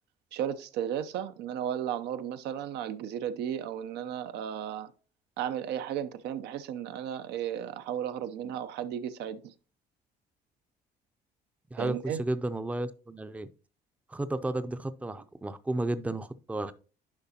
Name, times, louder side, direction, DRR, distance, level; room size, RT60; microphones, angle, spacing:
voice 1, 0.3-4.9 5.4-9.5 11.8-12.2, right 9 dB, 80° right, 0.6 m, -34 dB
voice 2, 11.7-13.5 14.1-16.7, right 2 dB, 10° right, 0.5 m, -33 dB
10.5 x 4.9 x 2.8 m
cardioid pair, 110°, 17 cm